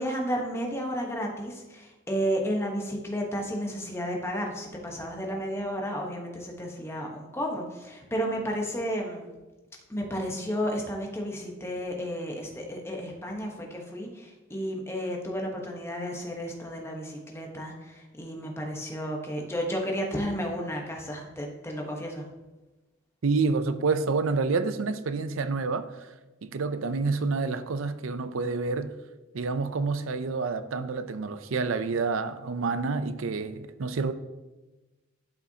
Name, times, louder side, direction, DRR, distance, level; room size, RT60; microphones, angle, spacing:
voice 1, 0.0-9.3 9.9-22.3, equal, 15° left, 1.1 m, -32 dB
voice 2, 23.2-26.1 26.4-28.9 29.3-34.1, right 4 dB, 80° right, 0.5 m, -28 dB
11.5 x 5.7 x 2.8 m
head